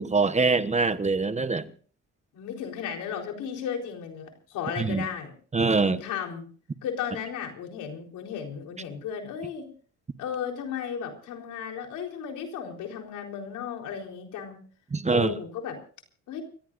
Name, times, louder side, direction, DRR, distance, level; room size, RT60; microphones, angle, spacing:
voice 1, 0.0-1.7 4.8-5.1 5.5-6.0 14.9-15.3, right 4 dB, 25° right, 1.1 m, -24 dB
voice 2, 2.3-5.3 5.8-6.5 6.8-9.7 10.2-14.6 15.1-15.8 16.3-16.4, left 8 dB, 90° left, 4.0 m, -34 dB
29.5 x 15.5 x 2.6 m
cardioid pair, 90°, 30 cm